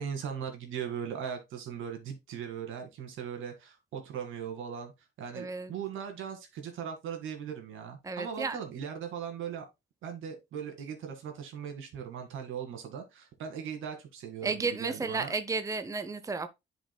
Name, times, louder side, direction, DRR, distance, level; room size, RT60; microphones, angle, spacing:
voice 1, 0.0-4.9 5.2-9.7 10.0-15.3, right 7 dB, 80° right, 2.1 m, -39 dB
voice 2, 5.3-5.7 8.0-8.6 14.4-16.5, right 4 dB, 15° right, 0.7 m, -33 dB
10.0 x 5.2 x 2.2 m
cardioid pair, 90°, 20 cm